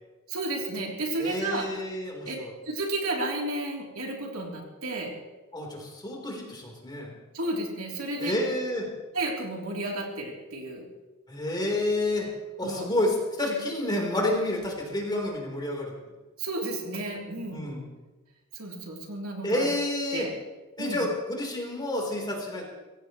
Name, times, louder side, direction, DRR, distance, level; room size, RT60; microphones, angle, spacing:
voice 1, 0.3-1.7 2.2-2.4 2.6-5.2 7.3-8.3 9.1-10.9 12.6-12.9 16.4-17.7 18.5-19.7 20.1-20.3 20.8-21.0, right 2 dB, 75° right, -1 dB, 3.5 m, -32 dB
voice 2, 1.2-2.5 5.5-7.1 8.2-8.9 11.3-12.3 12.6-15.9 17.5-17.8 19.4-20.3 20.8-22.6, left 1 dB, 20° left, -1 dB, 4.1 m, -29 dB
24.0 x 16.5 x 3.2 m, 1.2 s
head